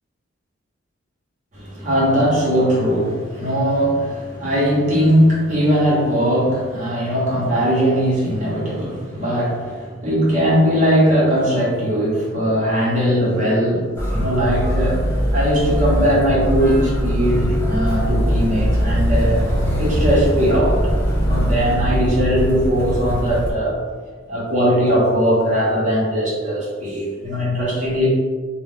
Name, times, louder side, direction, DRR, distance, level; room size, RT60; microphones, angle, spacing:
voice 1, 1.5-15.0 15.3-19.4 19.8-20.8 21.1-23.8 24.3-28.1, equal, 35° right, -7 dB, 0.8 m, -19 dB
Motor vehicle (road), 13.9-23.5, equal, 10° left, 0.4 m, -21 dB
2.4 x 2.2 x 3.4 m, 1.5 s
head